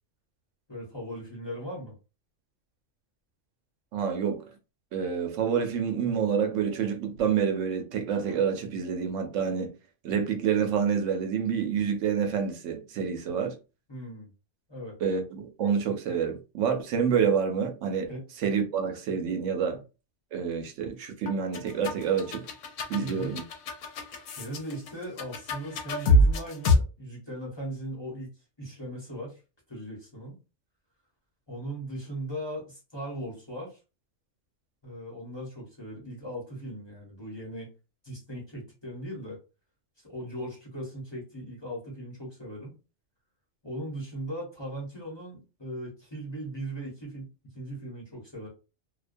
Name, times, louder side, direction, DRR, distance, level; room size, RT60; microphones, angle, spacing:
voice 1, 0.7-1.9 13.9-14.3 14.7-15.0 18.1-18.2 23.0-23.3 24.3-28.3 28.6-29.4 29.7-30.3 31.5-33.8 34.8-37.7 38.0-39.4 40.0-42.7 43.6-47.3 47.5-48.5, right 1 dB, 25° left, 0.9 m, -38 dB
voice 2, 3.9-4.5 4.9-9.7 10.0-13.6 15.0-18.1 18.4-19.8 20.3-22.5 22.9-23.4, right 7 dB, 85° right, 0.9 m, -28 dB
sound 1, 21.3-26.8, left 1 dB, 85° left, 1.0 m, -25 dB
2.4 x 2.2 x 2.5 m
omnidirectional pair, 1.3 m